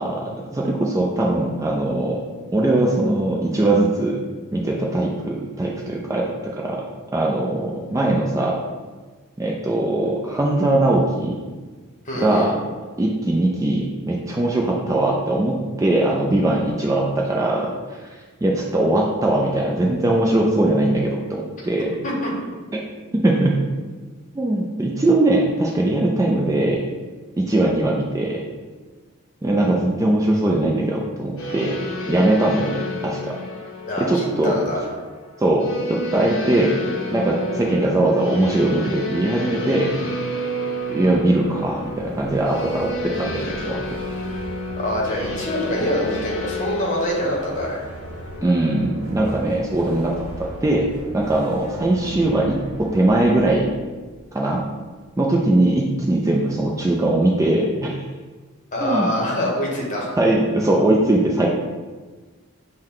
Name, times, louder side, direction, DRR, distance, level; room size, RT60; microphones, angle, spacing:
voice 1, 0.0-2.2 2.5-4.2 4.5-6.8 7.1-8.6 9.4-11.4 12.1-12.5 13.0-22.0 22.7-22.8 23.1-23.6 24.3-26.8 27.4-28.4 29.4-31.8 32.1-33.3 34.0-34.6 35.4-36.8 37.1-39.9 40.9-43.8 48.4-50.9 51.1-53.8 54.3-54.6 55.2-58.1 58.8-59.1 60.2-61.5, right 1 dB, 15° right, -2 dB, 0.3 m, -20 dB
voice 2, 12.0-12.5 22.2-22.3 33.9-34.8 44.8-47.8 58.7-60.2, equal, 35° left, -3 dB, 0.9 m, -25 dB
sound 1, 31.4-49.5, left 1 dB, 60° left, 0.6 m, -31 dB
sound 2, 40.8-54.8, right 1 dB, 75° right, 0.6 m, -39 dB
6.3 x 2.1 x 3.7 m, 1.4 s
head